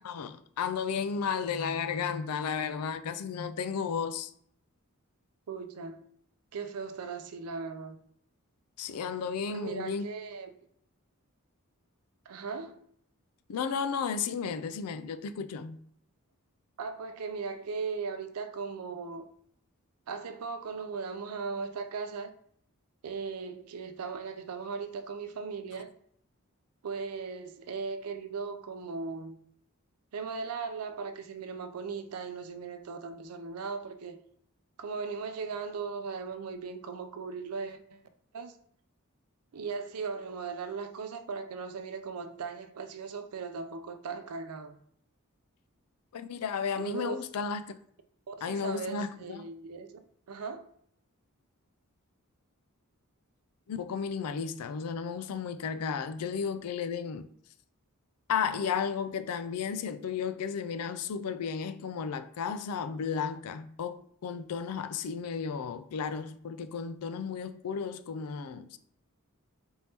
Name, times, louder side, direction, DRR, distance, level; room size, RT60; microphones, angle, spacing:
voice 1, 0.0-4.3 8.8-10.1 13.5-15.8 46.1-47.7 48.4-49.4 53.7-57.3 58.3-68.8, left 6 dB, 85° left, 0.4 m, -33 dB
voice 2, 5.5-6.1 6.5-8.0 9.5-10.6 12.3-12.8 16.8-19.3 20.1-22.3 23.0-25.9 26.8-29.4 30.1-34.2 34.8-38.0 38.3-38.6 39.5-44.8 46.8-47.2 48.3-50.0 50.3-50.7, right 5 dB, 85° right, 0.5 m, -38 dB
4.4 x 2.8 x 3.4 m
head